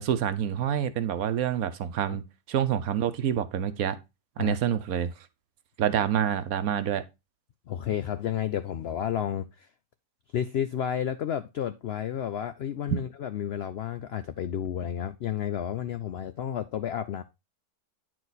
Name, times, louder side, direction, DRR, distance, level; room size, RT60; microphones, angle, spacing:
voice 1, 0.0-4.0 4.4-5.1 5.8-7.0 12.9-13.0, right 9 dB, 70° right, 1.2 m, -27 dB
voice 2, 7.7-9.7 10.3-17.2, left 9 dB, 75° left, 0.5 m, -31 dB
9.4 x 4.6 x 4.0 m
omnidirectional pair, 1.6 m